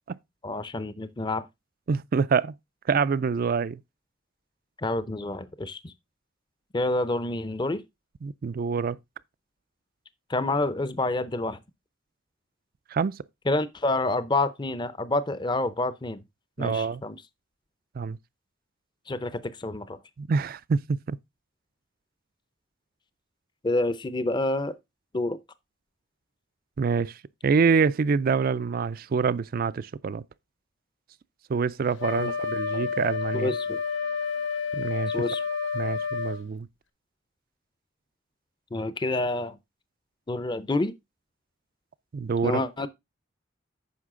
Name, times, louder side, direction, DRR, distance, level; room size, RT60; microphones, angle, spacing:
voice 1, 0.4-1.5 4.8-5.9 6.7-7.8 10.3-11.6 13.5-16.2 16.6-17.2 19.1-20.0 23.6-24.7 25.1-25.4 32.2-32.3 32.7-32.9 33.3-33.8 35.1-35.4 38.7-39.6 40.3-40.9 42.4-42.9, left 2 dB, 25° left, 0.6 m, -28 dB
voice 2, 1.9-2.6 2.9-3.8 8.2-9.0 12.9-13.2 16.6-17.0 18.0-18.2 20.2-21.2 26.8-27.2 27.4-30.2 31.5-33.5 34.7-35.2 35.7-36.7 42.1-42.6, right 5 dB, 50° right, 0.4 m, -26 dB
Wind instrument woodwind instrument, 32.0-36.4, left 5 dB, 70° left, 1.1 m, -30 dB
9.6 x 6.3 x 3.7 m
head